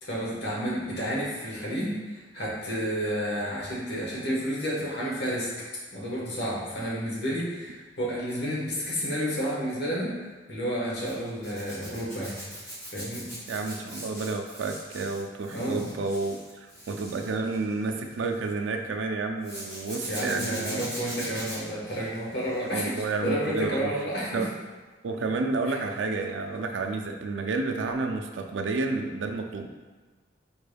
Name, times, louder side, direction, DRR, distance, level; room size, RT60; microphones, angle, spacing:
voice 1, 0.0-5.5 5.9-12.4 12.9-13.3 15.5-15.9 20.0-24.5 25.7-25.8, equal, 60° left, -6 dB, 1.2 m, -31 dB
Zipper (clothing), 11.0-18.5 19.4-23.1 23.4-23.8 26.1-26.3 26.5-26.6, equal, 15° left, 1.4 m, -41 dB
voice 2, 13.5-20.9 22.7-23.9 24.3-24.5 25.0-29.7, right 3 dB, 85° right, 4 dB, 0.4 m, -30 dB
4.5 x 3.3 x 2.2 m, 1.3 s
head